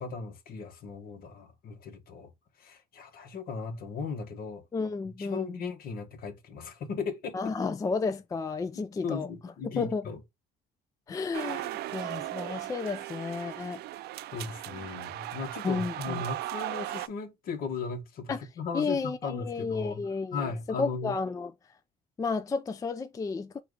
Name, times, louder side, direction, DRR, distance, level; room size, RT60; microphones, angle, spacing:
voice 1, 0.0-2.3 2.6-4.6 5.2-7.4 9.0-10.2 11.1-11.2 14.3-20.0 20.3-21.2, left 4 dB, 60° left, 1.2 m, -37 dB
voice 2, 4.7-5.6 7.3-9.3 9.6-10.1 11.1-13.8 15.6-16.2 18.3-18.4 18.7-21.5 22.2-23.6, left 4 dB, 20° left, 0.4 m, -32 dB
sound 1, 11.3-17.1, right 15 dB, 70° right, 0.5 m, -37 dB
4.4 x 2.5 x 4.8 m
cardioid pair, 110°, 17 cm